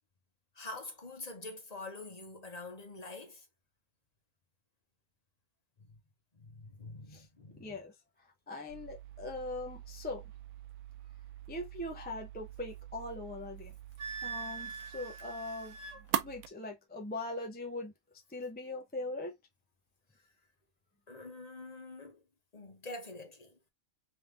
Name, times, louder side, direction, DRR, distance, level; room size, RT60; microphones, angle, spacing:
voice 1, 0.5-3.5 5.8-5.9 6.3-7.8 14.7-14.9 21.1-22.2 22.5-23.6, left 2 dB, 35° left, 0.9 m, -46 dB
voice 2, 7.6-7.9 8.5-10.2 11.5-13.7 14.2-15.8 16.2-17.9 18.3-19.3, left 2 dB, 15° left, 0.4 m, -41 dB
sound 1, 8.7-16.5, right 11 dB, 85° right, 1.0 m, -43 dB
Wind instrument woodwind instrument, 14.0-16.0, right 5 dB, 55° right, 1.1 m, -42 dB
3.5 x 3.3 x 3.2 m
omnidirectional pair, 1.4 m